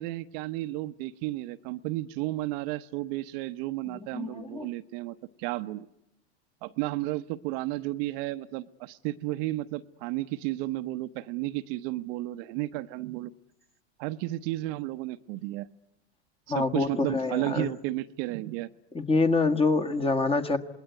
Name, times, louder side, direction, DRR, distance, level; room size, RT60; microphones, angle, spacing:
voice 1, 0.0-5.9 6.6-13.3 14.0-15.7 16.5-18.7, right 17 dB, 60° right, 11 dB, 1.0 m, -33 dB
voice 2, 3.9-4.7 16.5-17.7 18.9-20.6, left 3 dB, 15° left, 9 dB, 1.7 m, -26 dB
27.5 x 21.0 x 9.5 m, 0.84 s
hypercardioid pair, 105°, 34 cm